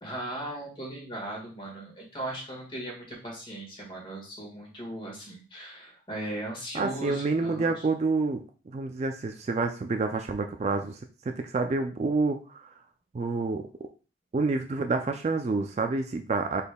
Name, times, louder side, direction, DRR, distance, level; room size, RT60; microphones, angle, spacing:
voice 1, 0.0-7.8, right 1 dB, 30° left, -1 dB, 1.6 m, -38 dB
voice 2, 6.7-12.7 13.1-13.7 14.3-16.6, right 3 dB, 35° right, 6 dB, 0.3 m, -28 dB
5.2 x 4.2 x 2.2 m, 0.36 s
head